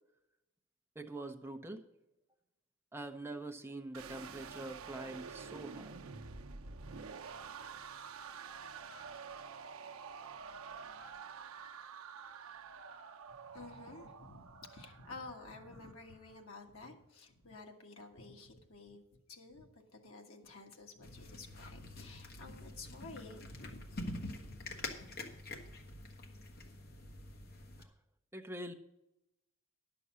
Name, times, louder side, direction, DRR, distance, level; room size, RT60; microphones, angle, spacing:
voice 1, 0.9-1.8 2.9-6.0 27.8-27.9 28.3-28.7, right 2 dB, 10° right, 3 dB, 0.7 m, -44 dB
sound 1, 3.9-16.0, right 5 dB, 75° right, 0.7 m, -48 dB
voice 2, 13.4-24.0 24.5-25.1, left 3 dB, 75° left, 2 dB, 1.6 m, -52 dB
sound 2, 21.0-27.8, left 2 dB, 45° left, 1.2 m, -46 dB
10.5 x 6.9 x 6.2 m, 0.90 s
head